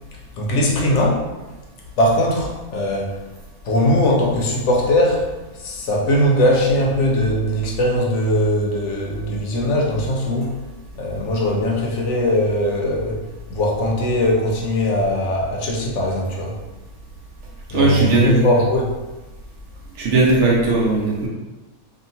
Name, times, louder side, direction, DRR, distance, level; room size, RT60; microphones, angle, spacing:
voice 1, 0.4-1.2 2.0-3.2 3.6-5.3 5.5-10.6 10.9-13.2 13.5-16.6 17.7-19.0, left 1 dB, 60° left, -2 dB, 0.9 m, -20 dB
voice 2, 17.7-18.5 20.0-21.3, right 2 dB, 65° right, -4 dB, 0.8 m, -17 dB
2.8 x 2.5 x 2.7 m, 1.1 s
omnidirectional pair, 1.5 m